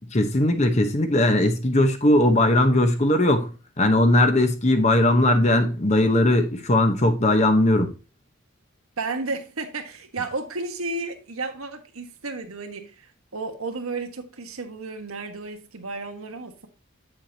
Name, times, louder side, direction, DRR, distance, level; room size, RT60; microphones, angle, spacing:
voice 1, 0.1-3.5 3.8-7.9, left 1 dB, 30° left, 0.9 m, -19 dB
voice 2, 9.0-16.7, right 3 dB, 85° right, 1.3 m, -33 dB
8.4 x 7.3 x 2.8 m
head